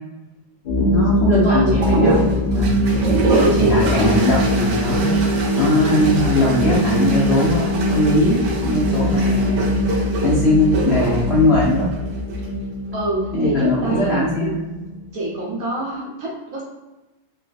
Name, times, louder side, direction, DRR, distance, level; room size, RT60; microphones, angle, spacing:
sound 1, 0.6-15.0, equal, 80° left, 0.4 m, -22 dB
voice 1, 0.7-2.7 3.4-5.1 5.6-11.9 13.3-14.6, left 1 dB, 50° left, -9 dB, 0.8 m, -20 dB
voice 2, 1.4-1.8 3.3-4.4 5.8-6.2 12.9-14.7 15.1-16.6, right 2 dB, 60° right, -4 dB, 1.0 m, -25 dB
sound 2, 1.8-12.5 13.7-14.2, right 3 dB, 75° right, 1.4 m, -25 dB
3.3 x 3.0 x 2.3 m, 1.0 s
omnidirectional pair, 2.0 m